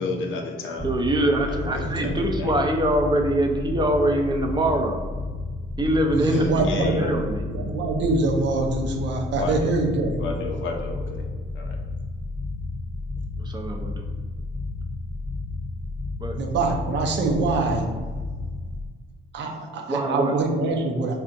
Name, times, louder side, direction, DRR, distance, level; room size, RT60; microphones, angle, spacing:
voice 1, 0.0-0.9 1.5-2.5 6.3-7.1 9.3-9.7 10.2-11.3 11.5-11.8, left 3 dB, 75° left, 2 dB, 0.6 m, -31 dB
sound 1, 0.8-18.9, left 2 dB, 15° left, 0.9 m, -32 dB
voice 2, 0.8-5.0 5.8-7.4 13.4-14.0 16.2-16.4 19.9-20.3, right 1 dB, 20° right, 2 dB, 0.5 m, -24 dB
voice 3, 1.8-2.1 6.1-7.1 7.5-10.2 16.4-17.9 19.3-21.2, right 3 dB, 65° right, 3 dB, 0.6 m, -24 dB
4.4 x 2.5 x 2.5 m, 1.5 s
cardioid pair, 90°, 20 cm